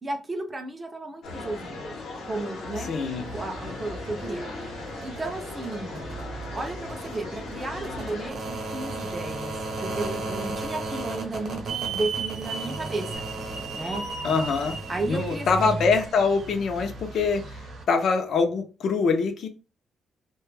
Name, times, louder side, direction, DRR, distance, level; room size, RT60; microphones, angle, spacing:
voice 1, 0.0-1.9 2.2-2.9 3.3-4.4 5.0-6.2 6.5-9.5 9.8-13.2 13.8-14.0 14.9-15.8, right 2 dB, 20° right, 0.4 m, -33 dB
sound 1, 1.2-8.3, left 2 dB, 80° left, 0.8 m, -37 dB
voice 2, 2.9-3.2 14.2-14.8 15.1-17.6 17.9-19.5, left 4 dB, 55° left, 0.4 m, -24 dB
sound 2, 3.0-17.8, right 2 dB, 60° right, 0.8 m, -36 dB
Hiss / Alarm, 11.7-16.5, right 6 dB, 85° right, 0.5 m, -36 dB
2.1 x 2.0 x 3.1 m
cardioid pair, 170°, 0 cm